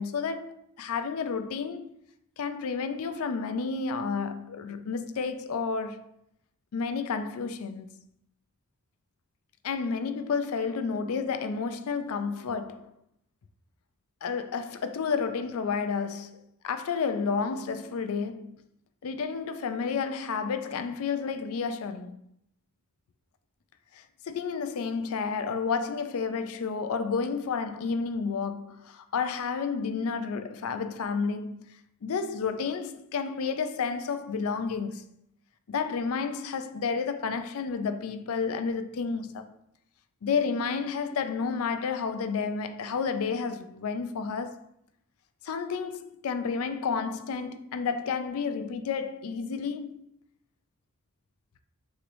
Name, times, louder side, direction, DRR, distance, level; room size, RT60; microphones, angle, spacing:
voice 1, 0.0-1.9 2.4-6.1 6.7-7.9 9.6-12.9 14.2-18.5 19.0-22.1 23.9-35.1 35.7-39.5 40.2-44.6 45.4-50.0, left 5 dB, 70° left, 0.4 m, -31 dB
6.2 x 3.1 x 2.6 m
head